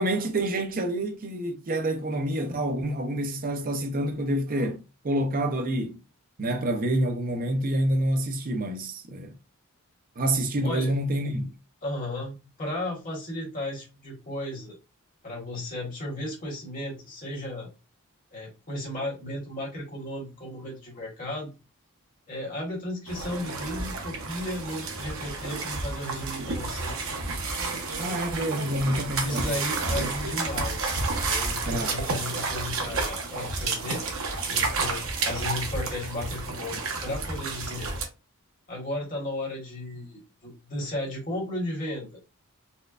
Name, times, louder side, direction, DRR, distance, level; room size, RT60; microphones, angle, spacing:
voice 1, 0.0-6.0 6.4-9.4 10.2-11.5 28.0-29.5 31.7-31.9, right 1 dB, 40° right, 0.6 m, -27 dB
voice 2, 10.6-10.9 11.8-14.7 15.2-17.7 18.3-21.5 22.3-27.0 29.2-34.0 34.5-37.9 38.7-42.2, left 1 dB, 40° left, 1.5 m, -34 dB
sound 1, 23.1-38.0, right 3 dB, 70° right, 0.8 m, -30 dB
4.2 x 2.2 x 2.4 m
head